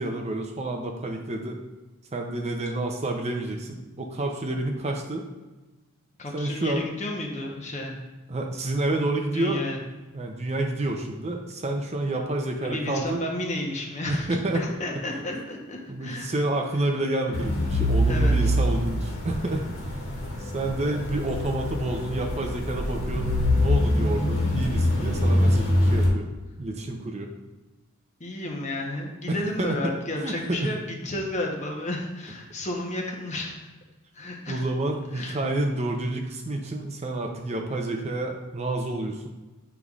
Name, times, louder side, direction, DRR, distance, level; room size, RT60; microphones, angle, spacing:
voice 1, 0.0-1.6 2.1-5.2 6.3-6.8 8.3-9.6 10.1-13.2 14.1-14.6 15.3-15.4 15.9-19.9 20.4-26.3 26.6-27.3 29.3-29.9 30.2-30.7 32.8-33.0 34.5-39.3, right 2 dB, 30° right, 3 dB, 0.5 m, -29 dB
voice 2, 6.2-8.0 9.3-9.8 12.6-14.3 14.5-16.3 18.0-18.5 28.2-33.6 34.1-34.6 35.1-35.4, left 1 dB, 30° left, 0 dB, 0.9 m, -32 dB
sound 1, 17.3-26.1, left 1 dB, 65° left, 1.7 m, -24 dB
8.1 x 5.3 x 2.4 m, 1.1 s
head